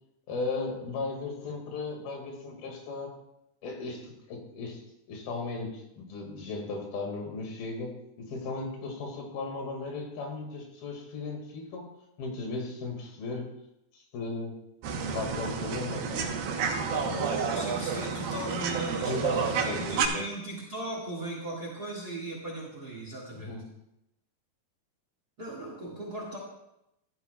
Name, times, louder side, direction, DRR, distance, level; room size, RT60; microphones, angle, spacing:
voice 1, 0.3-3.1 3.6-4.8 5.1-11.9 12.2-13.5 13.9-14.5 15.1-16.3 16.9-17.3 19.1-20.2 23.3-23.6, left 3 dB, 85° left, 2 dB, 3.7 m, -36 dB
sound 1, 14.8-20.1, right 6 dB, 75° right, 2.7 m, -30 dB
voice 2, 16.8-23.6 25.4-26.4, right 1 dB, 35° right, -2 dB, 1.7 m, -38 dB
15.5 x 11.5 x 2.3 m, 0.85 s
omnidirectional pair, 4.2 m